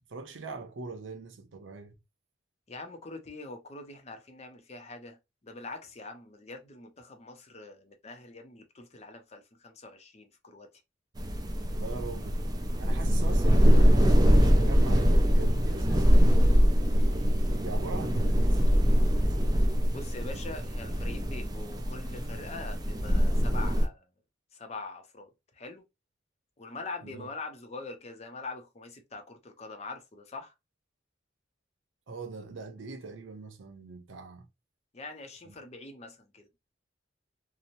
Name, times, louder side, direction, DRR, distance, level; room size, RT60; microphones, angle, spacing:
voice 1, 0.1-1.9 11.7-12.5 12.8-16.2 16.8-18.8 27.0-27.3 32.1-34.5 35.4-35.5, right 4 dB, 90° right, 0.6 m, -42 dB
voice 2, 2.7-5.2 5.4-10.7 19.9-24.1 24.5-25.8 26.6-30.5 34.9-36.5, left 3 dB, 35° left, 0.5 m, -43 dB
sound 1, 11.2-23.9, equal, 20° right, 0.4 m, -23 dB
2.9 x 2.0 x 2.6 m
head